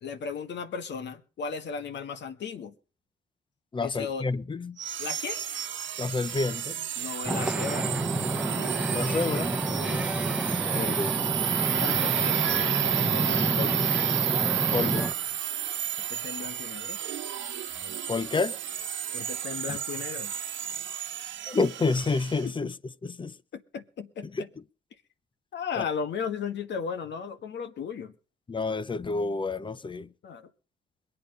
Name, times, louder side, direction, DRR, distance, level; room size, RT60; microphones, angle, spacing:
voice 1, 0.0-2.7 3.8-4.3 5.0-5.4 6.9-7.9 9.8-10.0 11.7-13.9 16.1-17.0 19.1-20.3 22.4-22.7 23.5-24.5 25.5-28.1 30.2-30.5, left 6 dB, 65° left, 1.7 m, -36 dB
voice 2, 3.7-4.8 6.0-6.8 8.9-9.5 10.7-11.3 13.6-13.7 14.7-15.1 18.1-18.5 19.7-19.8 21.5-22.7 23.2-23.3 24.3-24.4 25.8-25.9 28.5-30.1, left 3 dB, 25° left, 0.7 m, -29 dB
sound 1, 4.8-22.4, right 10 dB, 70° right, 1.1 m, -31 dB
Wind / Ocean, 7.2-15.1, right 1 dB, 5° right, 1.1 m, -29 dB
22.0 x 8.7 x 5.4 m
cardioid pair, 90°, 20 cm